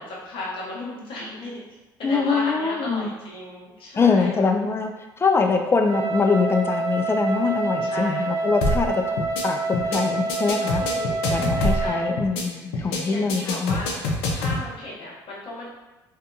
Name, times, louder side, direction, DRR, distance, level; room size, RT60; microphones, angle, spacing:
voice 1, 0.0-1.6 2.0-4.5 7.8-8.3 10.7-12.1 12.5-14.0 14.3-15.7, left 1 dB, 55° left, -5 dB, 1.0 m, -35 dB
voice 2, 2.0-3.1 4.0-4.9 5.2-10.8 11.3-13.8, left 4 dB, 25° left, 4 dB, 0.3 m, -23 dB
Wind instrument woodwind instrument, 5.9-12.3, right 3 dB, 35° right, 0.5 m, -27 dB
sound 1, 8.6-8.9 9.2-9.4 9.7-10.0 10.3-11.9 12.2-12.4 12.7-13.0 13.3-14.6, left 2 dB, 80° left, 0.5 m, -25 dB
2.6 x 2.3 x 2.4 m, 1.1 s
hypercardioid pair, 70°, 11 cm